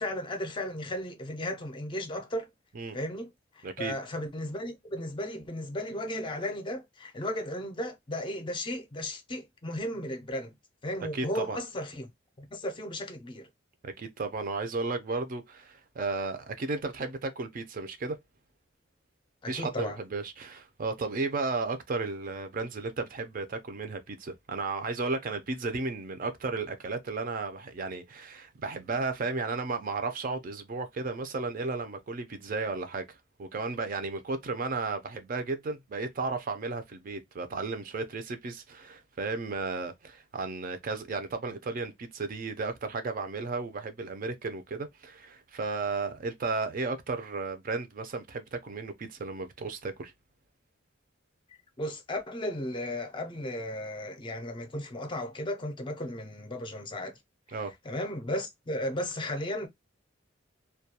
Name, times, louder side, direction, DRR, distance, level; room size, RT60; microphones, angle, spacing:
voice 1, 0.0-2.5 2.9-10.5 10.8-12.1 12.4-13.5 19.4-20.0 51.8-57.2 57.5-57.6 57.8-59.7, left 1 dB, 25° left, 0.5 m, -35 dB
voice 2, 3.6-3.9 11.1-11.6 13.8-18.2 19.5-50.1 57.5-57.7, right 3 dB, 45° right, 0.4 m, -34 dB
2.2 x 2.2 x 2.7 m
head